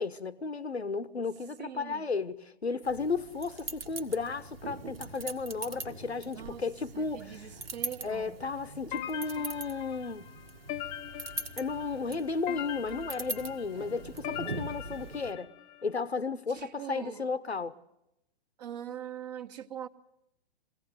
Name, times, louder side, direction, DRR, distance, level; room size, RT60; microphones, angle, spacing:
voice 1, 0.0-7.5 8.0-10.3 11.6-15.5 15.8-17.8, left 4 dB, 85° left, 1.0 m, -34 dB
voice 2, 1.6-2.1 6.3-6.7 6.9-8.4 16.5-17.3 18.6-19.9, right 10 dB, 40° right, 1.4 m, -42 dB
sound 1, 2.8-15.3, right 2 dB, 70° right, 1.7 m, -42 dB
sound 2, 8.9-15.8, left 11 dB, 20° left, 0.7 m, -42 dB
22.5 x 16.5 x 9.4 m
figure-of-eight pair, 115°, 31 cm